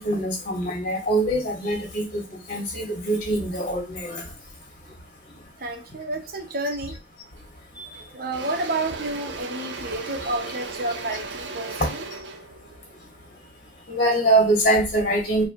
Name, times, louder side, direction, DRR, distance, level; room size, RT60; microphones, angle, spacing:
voice 1, 0.0-2.2 2.5-4.2 13.9-15.4, right 1 dB, 50° left, 2.2 m, -23 dB
voice 2, 5.6-7.0 8.1-12.1, right 2 dB, 55° right, 1.1 m, -30 dB
Engine / Drill, 7.4-7.6 7.9-14.1, right 4 dB, 85° right, 0.8 m, -37 dB
4.9 x 3.2 x 3.2 m
head